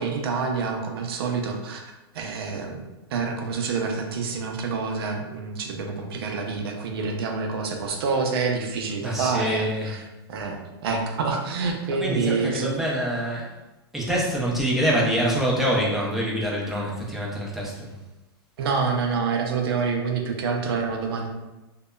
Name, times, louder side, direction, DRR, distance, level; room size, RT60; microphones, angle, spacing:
voice 1, 0.0-2.8 3.1-10.6 10.8-12.7 18.6-21.3, right 4 dB, 70° right, 2 dB, 0.5 m, -27 dB
voice 2, 9.0-9.9 12.0-13.5 13.9-17.9, equal, ahead, -5 dB, 0.5 m, -25 dB
2.7 x 2.1 x 2.2 m, 1.0 s
hypercardioid pair, 125°, 13 cm